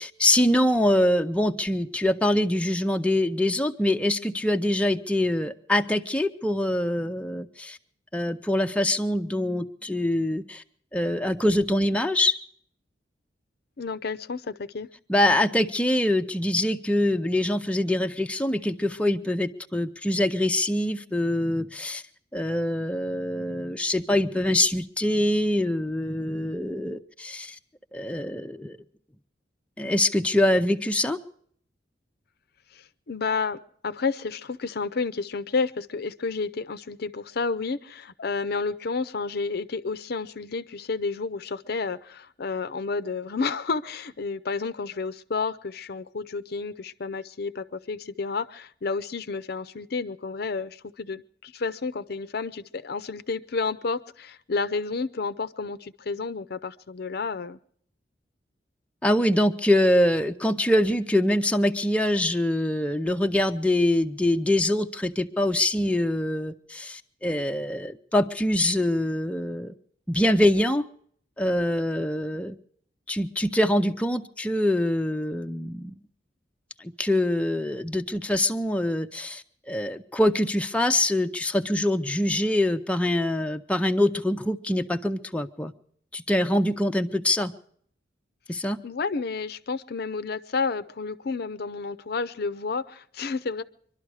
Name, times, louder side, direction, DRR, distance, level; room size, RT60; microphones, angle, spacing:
voice 1, 0.0-7.8 8.1-10.6 10.9-12.4 15.1-22.0 22.3-27.6 27.9-28.8 29.8-31.2 59.0-69.7 70.1-70.8 71.4-72.6 73.1-75.9 76.8-85.7 86.1-87.5 88.5-88.8, left 1 dB, 5° left, 5 dB, 0.6 m, -24 dB
voice 2, 13.8-14.9 32.7-57.6 88.8-93.6, left 4 dB, 60° left, 14 dB, 0.6 m, -31 dB
23.5 x 12.0 x 4.8 m, 0.62 s
head